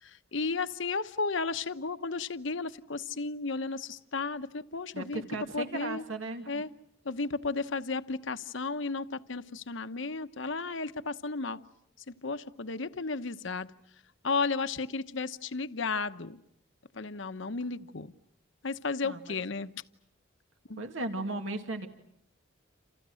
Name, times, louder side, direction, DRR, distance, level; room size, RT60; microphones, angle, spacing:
voice 1, 0.0-5.2 5.5-6.0 6.5-6.7 7.0-11.6 12.1-13.7 14.2-16.4 16.9-18.1 18.6-19.8 20.7-20.8, left 4 dB, 70° left, 11 dB, 1.0 m, -34 dB
voice 2, 4.9-6.6 19.0-19.4 20.8-21.9, right 2 dB, 80° right, 5 dB, 2.4 m, -36 dB
29.0 x 29.0 x 6.4 m, 0.76 s
head